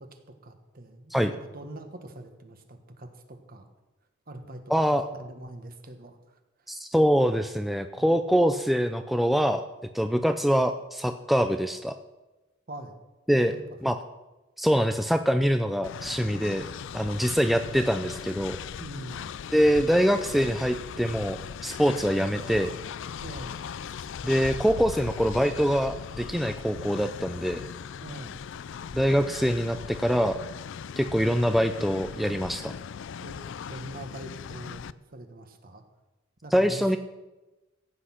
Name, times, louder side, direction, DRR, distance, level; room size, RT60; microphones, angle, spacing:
voice 1, 0.0-3.7 4.3-4.6 4.9-6.4 8.0-8.1 12.7-13.0 13.5-13.8 18.8-19.3 23.2-23.6 28.0-28.4 33.2-33.4 33.7-35.8 36.4-37.0, right 1 dB, 45° right, 7 dB, 1.4 m, -43 dB
voice 2, 4.7-5.0 6.7-9.6 9.9-11.9 13.3-13.6 13.8-14.0 14.6-16.7 16.9-18.6 19.5-22.7 24.2-27.6 28.9-30.4 31.0-32.7 36.5-37.0, equal, ahead, 7 dB, 0.4 m, -24 dB
Train, 15.8-34.9, left 7 dB, 65° left, 0.4 m, -39 dB
15.0 x 8.3 x 5.8 m, 1.1 s
head